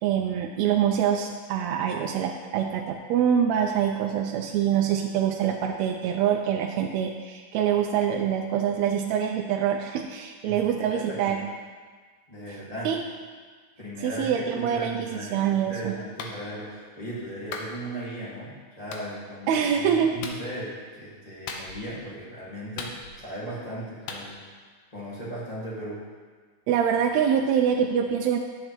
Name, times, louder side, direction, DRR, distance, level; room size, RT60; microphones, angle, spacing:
voice 1, 0.0-11.4 12.8-13.0 14.0-15.9 19.5-20.1 21.5-21.6 26.7-28.4, right 8 dB, 80° right, 2 dB, 1.7 m, -25 dB
voice 2, 10.4-11.4 12.3-12.9 13.8-24.4 24.9-26.0, right 1 dB, 20° left, -8 dB, 1.1 m, -37 dB
Clapping, 16.2-16.4 17.5-17.7 18.9-19.1 20.2-20.4 21.5-21.9 22.8-23.3 24.1-24.2, left 5 dB, 75° left, 1.8 m, -37 dB
10.5 x 7.5 x 3.0 m, 1.6 s
omnidirectional pair, 3.4 m